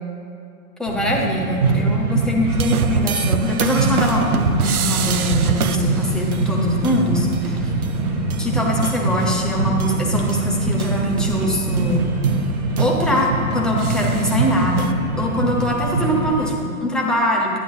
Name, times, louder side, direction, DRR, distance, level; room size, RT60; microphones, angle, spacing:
voice 1, 0.8-7.7 8.4-12.1 12.8-14.9 15.2-17.6, left 1 dB, ahead, -2 dB, 1.0 m, -22 dB
sound 1, 0.9-16.5, right 2 dB, 35° right, 1.2 m, -23 dB
sound 2, 2.5-10.0 10.3-14.9, right 7 dB, 85° right, 0.6 m, -27 dB
11.0 x 9.1 x 2.7 m, 2.4 s
hypercardioid pair, 115°, 43 cm